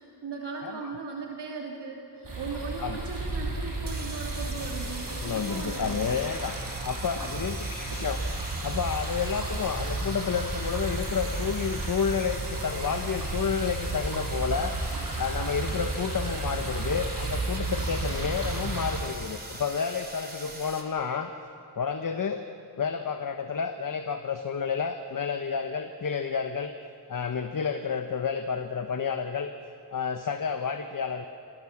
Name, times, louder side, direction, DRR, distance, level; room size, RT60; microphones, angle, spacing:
voice 1, 0.0-6.2, right 4 dB, 80° right, -1 dB, 2.9 m, -38 dB
sound 1, 2.2-19.0, right 2 dB, 50° right, 6.2 m, -33 dB
sound 2, 3.8-20.8, right 2 dB, 25° right, 3.2 m, -42 dB
voice 2, 5.1-6.5 6.8-8.2 8.6-21.3 21.7-22.5 22.8-26.7 27.1-29.5 29.9-31.3, left 6 dB, 50° left, 7 dB, 1.1 m, -30 dB
26.0 x 16.0 x 7.2 m, 2.7 s
wide cardioid pair, 85°, 41 cm